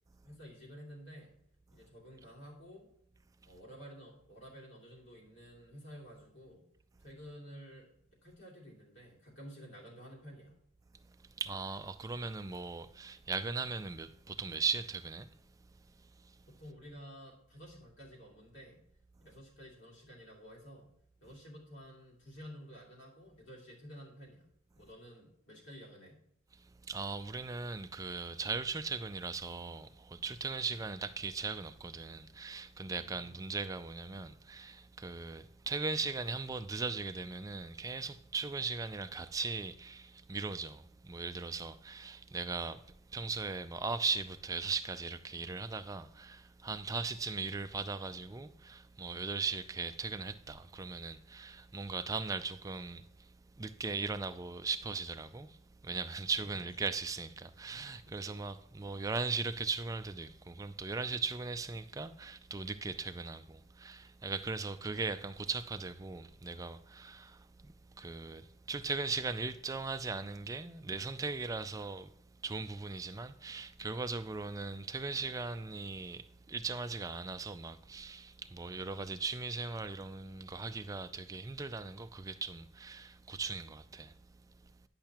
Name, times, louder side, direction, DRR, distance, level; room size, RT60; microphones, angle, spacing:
voice 1, 0.2-1.3 1.7-2.9 3.5-6.7 7.0-7.9 8.2-10.6 16.5-18.8 19.2-20.9 21.2-24.5 24.8-26.2 32.8-33.3 56.8-56.9 58.0-58.4, equal, 60° left, 2.5 m, -52 dB
voice 2, 11.4-15.3 26.8-42.8 43.1-53.3 53.6-55.6 55.8-72.1 72.4-84.1, right 4 dB, 15° right, 0.3 m, -38 dB
10.5 x 5.6 x 2.9 m
head